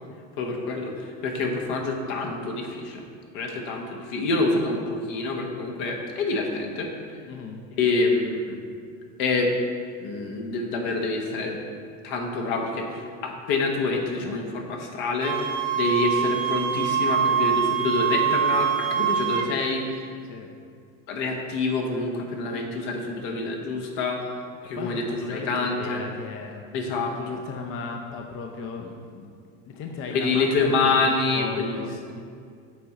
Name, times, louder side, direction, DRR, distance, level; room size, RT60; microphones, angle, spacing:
voice 1, 0.4-3.0 3.3-6.9 7.8-8.5 9.2-9.5 10.0-11.6 12.0-15.4 15.7-20.1 21.1-24.3 24.6-26.0 26.7-27.4 30.1-31.8, left 3 dB, 65° left, 2 dB, 1.1 m, -26 dB
voice 2, 7.3-7.6 20.2-20.5 24.8-26.6 27.2-29.3 29.7-32.2, left 4 dB, 35° left, 2 dB, 0.6 m, -36 dB
Wind instrument woodwind instrument, 15.2-19.5, right 8 dB, 75° right, 0.8 m, -24 dB
7.6 x 3.7 x 4.2 m, 2.2 s
supercardioid pair, 95°, 39 cm